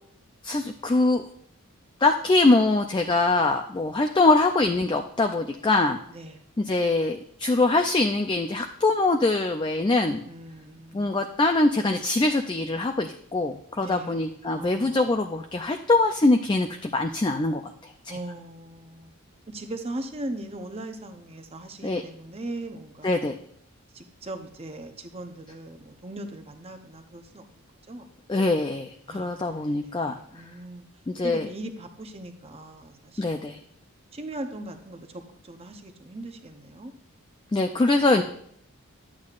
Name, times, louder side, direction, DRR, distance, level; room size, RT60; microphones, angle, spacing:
voice 1, 0.4-1.3 2.0-6.0 6.6-10.2 10.9-18.2 21.8-22.0 23.0-23.4 28.3-30.2 31.1-31.5 33.2-33.6 37.5-38.2, left 2 dB, 20° left, 5 dB, 0.3 m, -23 dB
voice 2, 6.1-6.4 10.2-11.3 13.8-15.0 18.1-19.1 19.5-23.2 23.9-28.1 29.1-30.9 31.2-33.7 34.1-36.9, right 1 dB, 25° right, 6 dB, 0.7 m, -39 dB
11.5 x 8.3 x 2.5 m, 0.67 s
head